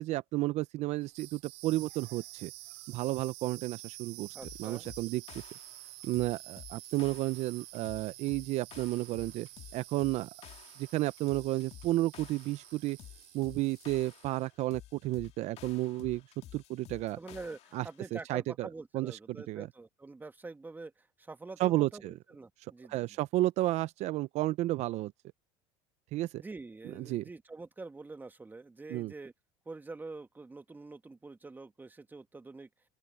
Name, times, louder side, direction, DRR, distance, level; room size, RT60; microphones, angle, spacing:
voice 1, 0.0-2.5 2.9-4.3 4.6-5.2 6.0-10.3 10.8-13.0 13.3-16.2 16.5-17.2 17.7-17.9 18.1-18.7 18.9-19.7 21.6-22.1 22.9-25.1 26.1-26.4 27.0-27.2 28.9-29.1, right 17 dB, 55° right, 0.7 m, -32 dB
sound 1, 1.0-14.5, right 24 dB, 80° right, 3.8 m, -50 dB
voice 2, 4.3-4.9 17.1-23.2 26.4-29.3 29.6-32.7, right 3 dB, 15° right, 1.5 m, -46 dB
sound 2, 4.4-18.0, left 12 dB, 50° left, 2.2 m, -53 dB
open air
supercardioid pair, 95°, 13 cm